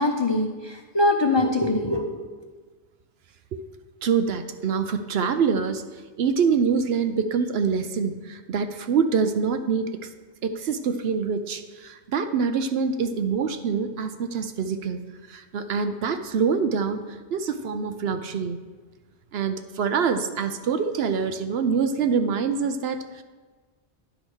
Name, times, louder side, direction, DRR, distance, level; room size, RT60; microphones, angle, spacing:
voice 1, 0.0-2.5, left 2 dB, 30° left, 2 dB, 0.6 m, -23 dB
voice 2, 4.0-5.8 6.2-10.1 10.4-15.0 15.3-18.6 19.3-23.2, right 6 dB, 70° right, 9 dB, 0.8 m, -25 dB
10.5 x 5.0 x 6.2 m, 1.4 s
omnidirectional pair, 1.1 m